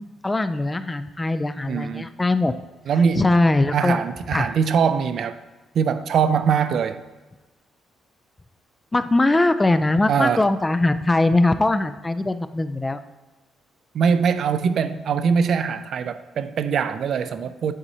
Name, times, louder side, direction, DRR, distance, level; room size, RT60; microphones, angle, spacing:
voice 1, 0.0-2.5 3.1-4.0 4.3-4.5 8.9-13.0, left 2 dB, 15° left, 11 dB, 0.3 m, -21 dB
voice 2, 1.7-2.1 2.9-3.4 3.7-5.4 5.7-7.0 10.1-10.4 13.9-17.7, right 6 dB, 65° right, 11 dB, 0.4 m, -22 dB
9.8 x 4.2 x 2.8 m, 1.2 s
cardioid pair, 90°, 0 cm